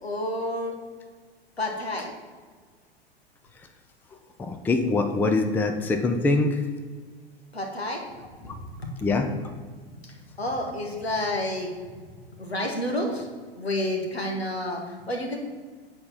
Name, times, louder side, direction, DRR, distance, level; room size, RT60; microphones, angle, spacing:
voice 1, 0.0-0.8 1.6-2.1 7.5-8.9 10.4-11.7 12.4-13.3 13.6-15.4, left 1 dB, 80° left, 1 dB, 1.9 m, -30 dB
voice 2, 4.4-6.7 9.0-9.3, left 3 dB, 5° left, 6 dB, 0.5 m, -23 dB
8.6 x 4.1 x 7.1 m, 1.5 s
figure-of-eight pair, 95°, 31 cm